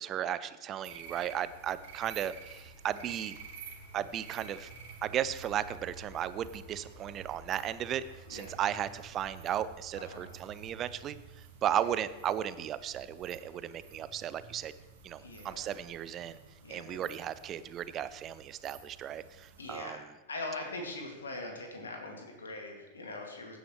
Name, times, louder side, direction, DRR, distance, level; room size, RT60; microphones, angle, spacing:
voice 1, 0.0-3.4 3.9-4.7 5.0-14.7 15.0-16.4 16.7-20.0, right 10 dB, 30° right, 15 dB, 0.5 m, -35 dB
sound 1, 0.8-19.8, right 5 dB, 55° right, 1.8 m, -51 dB
voice 2, 8.3-8.6 9.9-10.4 11.6-12.0 15.2-15.8 16.6-17.0 19.6-20.0 20.3-23.6, left 2 dB, 70° left, 2 dB, 2.2 m, -42 dB
15.5 x 9.3 x 3.2 m, 1.1 s
figure-of-eight pair, 90°, 0 cm